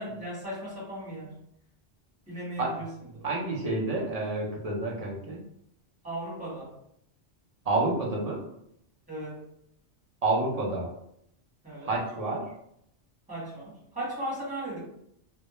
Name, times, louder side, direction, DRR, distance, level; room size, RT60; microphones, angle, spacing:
voice 1, 0.0-1.4 2.3-2.9 6.0-6.7 9.1-9.4 11.6-11.9 13.3-14.8, right 1 dB, 5° right, -8 dB, 1.1 m, -36 dB
voice 2, 3.2-5.4 7.6-8.4 10.2-10.9 11.8-12.5, right 2 dB, 45° right, -3 dB, 0.5 m, -29 dB
2.1 x 2.0 x 3.0 m, 0.73 s
omnidirectional pair, 1.2 m